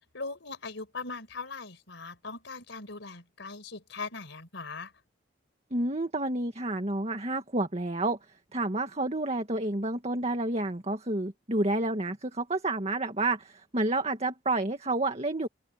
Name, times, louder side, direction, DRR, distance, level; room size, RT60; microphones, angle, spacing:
voice 1, 0.1-4.9, left 4 dB, 65° left, 4.9 m, -40 dB
voice 2, 5.7-8.2 8.5-15.5, right 2 dB, 35° right, 1.9 m, -29 dB
open air
head